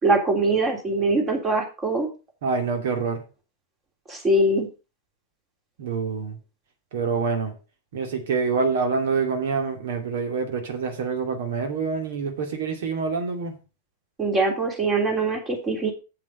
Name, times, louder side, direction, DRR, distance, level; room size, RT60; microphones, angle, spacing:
voice 1, 0.0-2.1 4.1-4.7 14.2-15.9, right 2 dB, 20° right, 3.4 m, -22 dB
voice 2, 2.4-3.2 5.8-6.4 6.9-7.5 7.9-13.5, right 5 dB, 55° right, 2.4 m, -26 dB
8.0 x 7.6 x 5.1 m
figure-of-eight pair, 95°, 0 cm